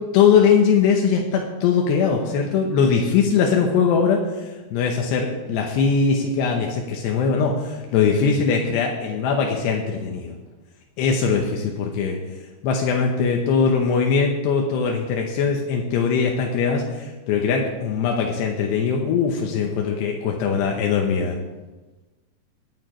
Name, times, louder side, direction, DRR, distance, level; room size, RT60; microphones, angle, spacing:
voice 1, 0.1-4.2 4.7-10.3 11.0-12.2 12.6-21.4, left 6 dB, 90° left, 1 dB, 3.2 m, -21 dB
20.5 x 9.1 x 3.1 m, 1.1 s
omnidirectional pair, 4.7 m